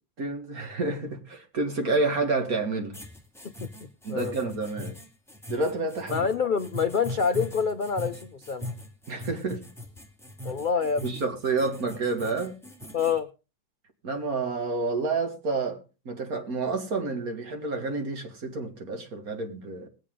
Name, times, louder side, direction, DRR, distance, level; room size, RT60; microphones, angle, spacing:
voice 1, 0.2-3.0 4.0-5.0 5.5-6.3 9.1-9.7 11.0-12.6 14.0-15.8 16.1-19.9, right 3 dB, 60° right, 4 dB, 2.4 m, -29 dB
sound 1, 2.9-13.2, left 1 dB, ahead, 2.0 m, -40 dB
voice 2, 3.4-4.5 6.1-8.7 10.4-11.0 12.9-13.3, left 6 dB, 55° left, 9 dB, 0.5 m, -27 dB
20.5 x 8.4 x 3.7 m, 0.31 s
omnidirectional pair, 1.7 m